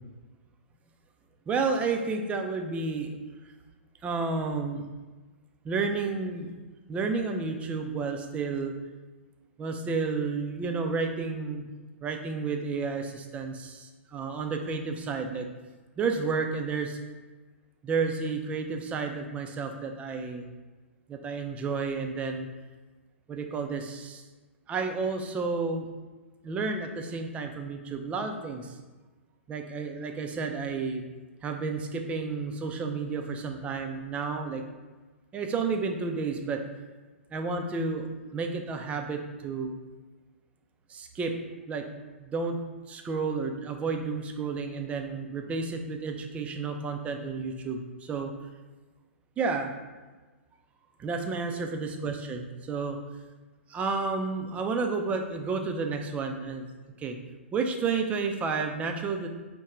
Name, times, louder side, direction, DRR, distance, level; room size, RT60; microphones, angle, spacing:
voice 1, 1.5-3.2 4.0-4.9 5.6-6.5 6.9-8.7 9.6-11.6 12.0-15.5 16.0-17.0 17.8-20.5 21.1-22.5 23.3-24.2 24.7-25.9 26.4-28.7 29.5-31.0 31.4-34.6 35.3-36.6 37.3-39.7 40.9-41.3 41.7-41.9 42.2-42.6 42.9-48.3 49.4-49.7 51.0-53.0 53.7-56.6 57.0-57.2 57.5-59.3, right 4 dB, 20° right, 4 dB, 0.4 m, -31 dB
3.6 x 2.1 x 4.3 m, 1.3 s
hypercardioid pair, 115°, 7 cm